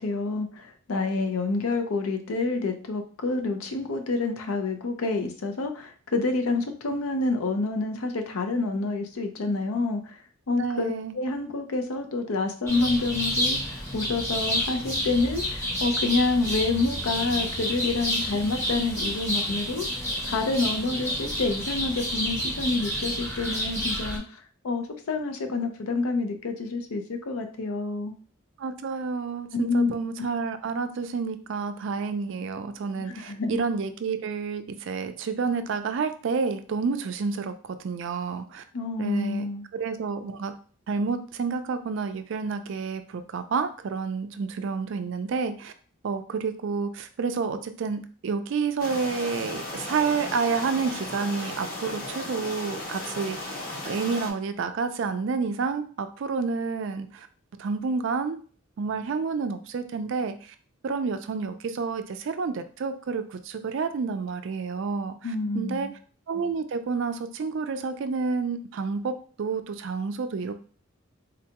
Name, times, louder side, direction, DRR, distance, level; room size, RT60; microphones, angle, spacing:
voice 1, 0.0-10.2 10.5-28.1 29.5-29.9 33.1-33.6 38.7-39.7 65.2-65.9, left 3 dB, 85° left, 6 dB, 0.5 m, -28 dB
voice 2, 10.5-11.2 28.6-38.6 39.0-39.4 39.7-40.5 40.9-45.7 46.0-53.6 53.8-57.3 57.6-58.4 58.8-60.5 60.8-65.3 65.5-65.9 66.3-70.5, right 5 dB, 60° right, 9 dB, 0.3 m, -29 dB
sound 1, 12.7-24.2, equal, 15° left, 0.7 m, -29 dB
sound 2, 48.8-54.3, left 2 dB, 45° left, 0.8 m, -35 dB
3.8 x 2.2 x 2.8 m, 0.42 s
head